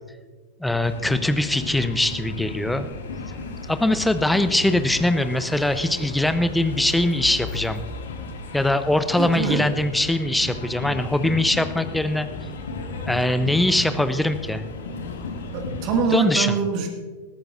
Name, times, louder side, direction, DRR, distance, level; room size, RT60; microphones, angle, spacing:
voice 1, 0.6-2.9 3.7-7.8 8.5-12.3 13.1-14.6 16.1-16.6, left 1 dB, 5° left, 11 dB, 0.7 m, -22 dB
sound 1, 0.8-16.0, left 3 dB, 65° left, 1.7 m, -34 dB
voice 2, 9.2-9.6 15.5-16.9, right 5 dB, 40° right, 3 dB, 1.8 m, -24 dB
20.0 x 14.0 x 2.5 m, 1.4 s
figure-of-eight pair, 90°, 0 cm